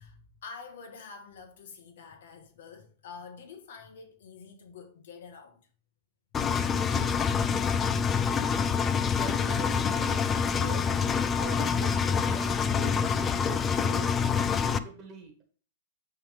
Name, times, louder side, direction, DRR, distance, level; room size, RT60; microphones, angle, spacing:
voice 1, 0.0-5.6, left 5 dB, 70° left, 1.5 m, -47 dB
Engine, 6.3-14.8, left 6 dB, 15° left, 0.4 m, -26 dB
voice 2, 9.0-15.4, right 5 dB, 20° right, 1.5 m, -44 dB
9.9 x 3.6 x 3.5 m
supercardioid pair, 160°, 0 cm